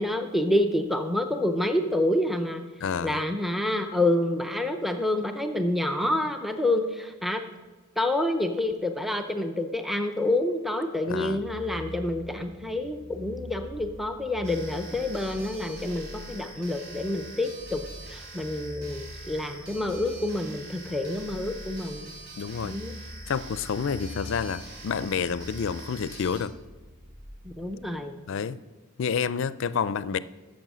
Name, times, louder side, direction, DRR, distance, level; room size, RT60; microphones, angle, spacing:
voice 1, 0.0-2.6 3.0-7.4 8.0-22.1 22.6-22.9 27.4-28.2, left 1 dB, ahead, 0.5 m, -28 dB
voice 2, 2.8-3.2 11.1-11.4 22.4-22.8 23.3-26.5 28.3-28.6 29.0-30.2, left 6 dB, 60° left, 0.4 m, -29 dB
sound 1, 11.4-27.9, left 1 dB, 35° right, 1.4 m, -45 dB
sound 2, 14.4-26.4, right 2 dB, 55° right, 3.8 m, -45 dB
13.5 x 7.0 x 6.2 m
head